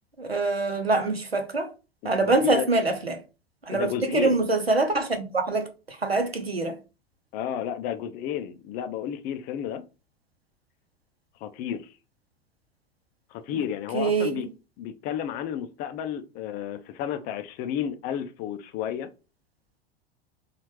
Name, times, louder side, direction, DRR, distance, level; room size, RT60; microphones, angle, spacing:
voice 1, 0.2-1.7 2.0-3.2 3.6-6.8 13.5-13.6 13.9-14.5, right 3 dB, 90° right, 0.7 m, -25 dB
voice 2, 2.0-2.7 3.7-4.4 7.3-9.8 11.4-11.9 13.3-14.5 14.8-19.1, left 9 dB, 30° left, 0.4 m, -32 dB
4.2 x 2.4 x 3.0 m
figure-of-eight pair, 85°, 30 cm